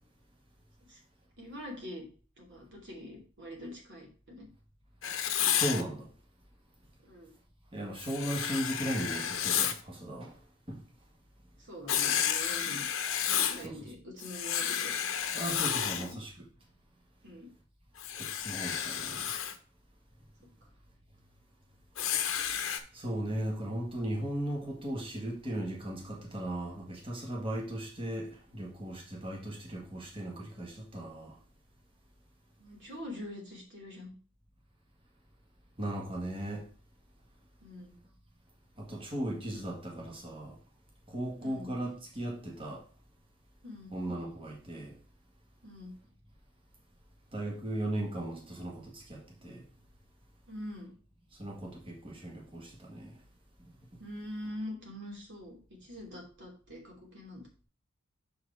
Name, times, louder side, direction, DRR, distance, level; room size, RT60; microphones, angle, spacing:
voice 1, 1.4-2.1 2.4-4.5 7.0-7.3 11.6-12.9 13.5-14.9 15.7-16.2 17.2-17.5 32.6-34.1 37.6-38.0 41.4-41.8 43.6-44.0 45.6-45.9 50.5-50.9 54.0-55.6 55.8-57.5, left 1 dB, 55° right, 2.9 m, -44 dB
Writing, 5.0-5.8 8.0-9.8 11.9-13.6 14.2-16.1 18.0-19.5 22.0-22.8, left 9 dB, 60° left, 0.9 m, -31 dB
voice 2, 5.5-6.1 7.7-10.3 10.7-10.8 13.6-13.9 15.3-16.4 18.1-19.3 22.9-31.3 35.8-36.7 38.8-40.6 41.1-42.8 43.9-44.9 47.3-49.6 51.4-53.1, right 1 dB, 25° right, 1.7 m, -37 dB
6.7 x 4.8 x 4.8 m
head